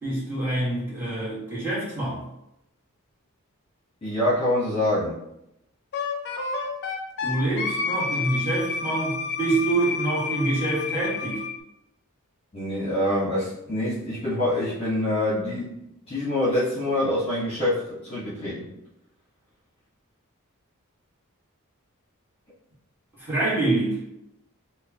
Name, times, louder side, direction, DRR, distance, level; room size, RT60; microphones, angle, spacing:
voice 1, 0.0-2.2 7.2-11.4 23.2-24.0, right 2 dB, 10° right, -9 dB, 1.5 m, -26 dB
voice 2, 4.0-5.2 12.5-15.7 16.1-18.7, left 1 dB, 25° left, -9 dB, 1.1 m, -25 dB
Wind instrument woodwind instrument, 5.9-11.6, left 4 dB, 55° left, 0.5 m, -30 dB
4.7 x 2.2 x 2.8 m, 0.83 s
head